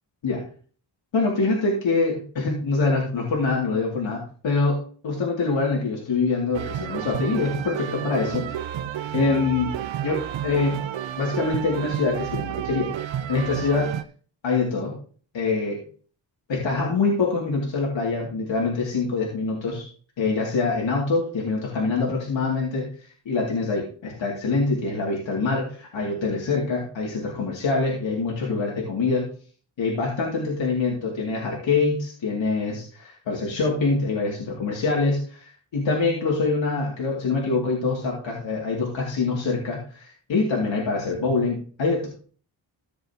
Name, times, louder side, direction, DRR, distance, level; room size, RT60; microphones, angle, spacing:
voice 1, 1.1-8.6 9.1-9.7 10.0-10.8 11.2-12.9 13.3-13.9 14.4-15.0 15.3-15.8 16.5-19.9 20.2-22.9 23.3-29.3 29.8-42.1, left 3 dB, 80° left, -3 dB, 2.6 m, -25 dB
sound 1, 6.5-14.0, right 10 dB, 80° right, 0.7 m, -31 dB
14.5 x 7.2 x 2.9 m, 0.42 s
cardioid pair, 90°, 45 cm